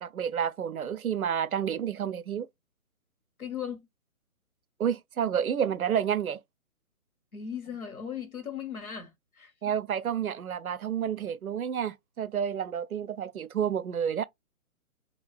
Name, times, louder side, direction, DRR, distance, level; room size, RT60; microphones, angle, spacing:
voice 1, 0.0-2.5 4.8-6.4 9.6-14.2, right 8 dB, 90° right, 0.5 m, -30 dB
voice 2, 3.4-3.9 7.3-9.5, left 8 dB, 80° left, 1.3 m, -37 dB
2.7 x 2.6 x 3.2 m
figure-of-eight pair, 135°, 42 cm